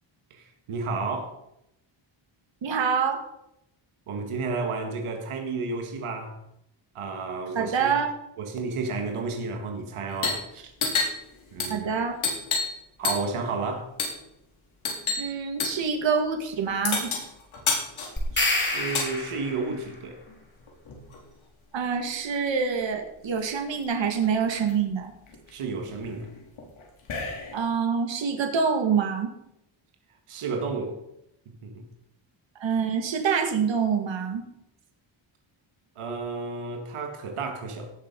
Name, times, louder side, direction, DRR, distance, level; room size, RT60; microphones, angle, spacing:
voice 1, 0.3-1.4 4.1-6.4 7.0-8.0 8.4-10.7 11.5-11.9 13.0-13.9 18.3-20.2 25.5-26.3 30.3-31.0 31.5-31.8 36.0-37.9, right 4 dB, 90° right, 4 dB, 1.9 m, -32 dB
voice 2, 2.6-3.2 7.5-8.1 11.7-12.2 15.2-17.1 21.7-25.1 27.5-29.3 32.6-34.4, right 6 dB, 65° right, 4 dB, 2.1 m, -26 dB
sound 1, 10.1-10.5 10.7-12.8 13.0-13.4 14.0-14.2 14.8-15.3 15.6-15.8 16.8-19.1 20.2-21.2 22.5-22.6 22.8-23.4 23.9-24.0 24.2-24.7 25.3-27.7, left 4 dB, 75° left, 3.9 m, -30 dB
sound 2, 18.2-19.7, left 2 dB, 20° left, 3.9 m, -27 dB
17.0 x 7.0 x 5.4 m, 0.82 s
wide cardioid pair, 130°, 49 cm